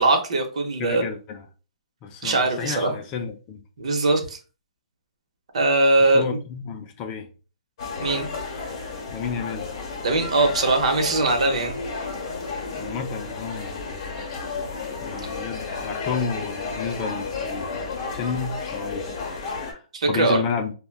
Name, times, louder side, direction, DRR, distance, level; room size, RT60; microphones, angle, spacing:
voice 1, 0.0-1.1 2.2-2.9 3.8-4.4 5.5-6.2 8.0-8.3 10.0-11.8 19.9-20.4, right 2 dB, 65° right, 0.8 m, -21 dB
voice 2, 0.8-1.5 2.0-3.6 6.0-7.3 9.1-9.7 12.8-14.1 15.0-19.8 20.1-20.7, left 6 dB, 20° left, 0.3 m, -31 dB
sound 1, 7.8-19.7, left 4 dB, 40° left, 0.8 m, -32 dB
3.2 x 2.1 x 2.3 m
hypercardioid pair, 160°, 4 cm